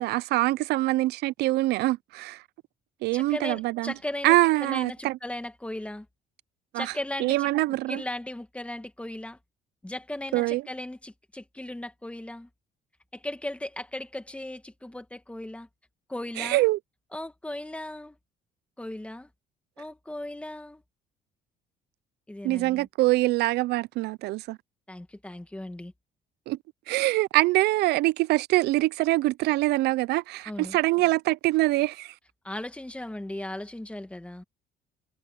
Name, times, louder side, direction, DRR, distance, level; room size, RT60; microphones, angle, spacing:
voice 1, 0.0-2.4 3.0-3.9 4.2-5.2 6.7-6.9 7.2-8.0 10.3-10.6 16.4-16.8 22.4-24.6 26.5-26.6 26.9-32.1, right 19 dB, 75° right, 0.4 m, -24 dB
voice 2, 3.1-6.1 6.7-7.5 7.9-9.4 9.8-12.5 13.1-15.7 16.1-16.6 17.1-18.2 18.8-19.3 19.8-20.8 22.3-22.9 24.9-25.9 30.5-30.8 32.4-34.4, left 1 dB, 5° left, 1.9 m, -37 dB
cardioid pair, 110°, 17 cm